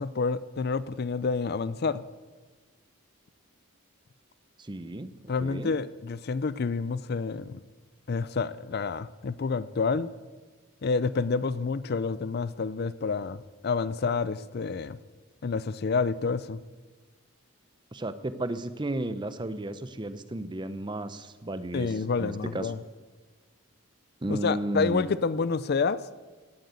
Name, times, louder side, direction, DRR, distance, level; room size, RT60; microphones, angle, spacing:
voice 1, 0.0-2.0 5.3-7.6 8.1-10.1 10.8-13.4 13.6-15.0 15.4-16.6 21.7-22.8 24.3-26.0, left 4 dB, 45° left, 16 dB, 0.4 m, -28 dB
voice 2, 4.6-5.1 5.4-5.7 17.9-22.7 24.2-25.0, right 1 dB, 20° right, 13 dB, 0.6 m, -33 dB
17.5 x 7.9 x 8.1 m, 1.4 s
head